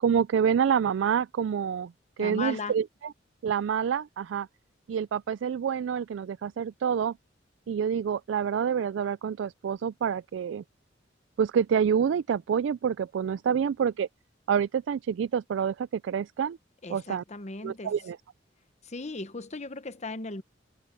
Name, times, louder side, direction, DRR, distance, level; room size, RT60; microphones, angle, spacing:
voice 1, 0.0-3.1 3.4-4.5 4.9-7.2 7.7-10.6 11.4-14.1 14.5-16.6 16.9-17.2 17.6-18.2, right 7 dB, 70° right, 0.3 m, -27 dB
voice 2, 2.2-2.8 16.8-17.9 18.8-20.4, left 3 dB, 35° left, 1.0 m, -37 dB
head